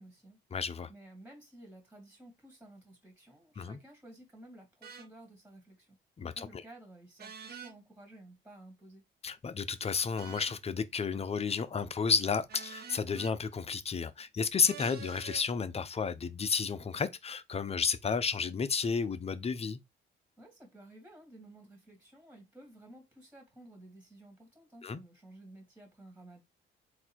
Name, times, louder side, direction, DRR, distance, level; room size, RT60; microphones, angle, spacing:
voice 1, 0.0-0.4 0.9-6.0 6.4-9.0 20.4-26.4, right 1 dB, 10° right, 2.3 m, -54 dB
voice 2, 0.5-0.9 3.6-3.8 6.2-6.5 9.2-19.8 24.8-25.0, left 5 dB, 30° left, 0.6 m, -32 dB
sound 1, 4.8-5.1 7.2-7.7 10.2-10.6 12.5-13.3 14.6-15.5, right 6 dB, 50° right, 1.3 m, -46 dB
3.9 x 2.6 x 4.4 m
cardioid pair, 90°, 20 cm